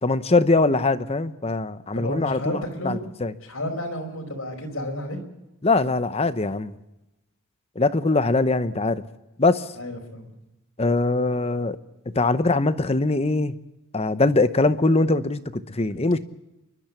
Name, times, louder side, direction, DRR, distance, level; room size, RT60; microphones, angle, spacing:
voice 1, 0.0-3.3 5.6-6.7 7.8-9.0 9.4-9.7 10.8-11.8 12.1-13.5 13.9-16.2, left 3 dB, 30° left, 13 dB, 0.8 m, -22 dB
voice 2, 1.9-3.0 3.4-5.2 9.8-10.3 15.9-16.0, left 1 dB, 65° left, 2 dB, 5.1 m, -31 dB
29.0 x 12.0 x 8.4 m, 0.98 s
head